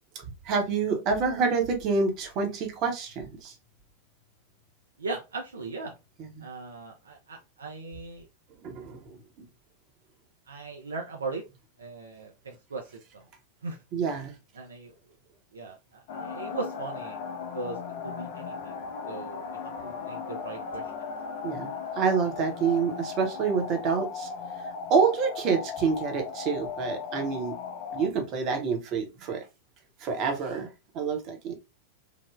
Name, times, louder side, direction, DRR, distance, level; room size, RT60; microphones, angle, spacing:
voice 1, 0.1-3.5 6.2-6.4 8.6-9.2 13.9-14.3 21.4-21.7 21.9-24.3 24.6-27.6 27.9-29.4 30.0-30.7 30.9-31.5, right 5 dB, 40° right, 3 dB, 0.8 m, -27 dB
voice 2, 5.0-5.9 6.4-8.3 10.5-11.4 11.8-13.2 13.6-13.8 14.5-14.9 15.5-17.2 17.5-18.7 19.0-20.9, right 3 dB, 70° right, 2 dB, 0.4 m, -38 dB
sound 1, 16.1-28.1, left 5 dB, 50° left, 0.5 m, -37 dB
3.3 x 2.0 x 2.3 m, 0.27 s
figure-of-eight pair, 90°, 0 cm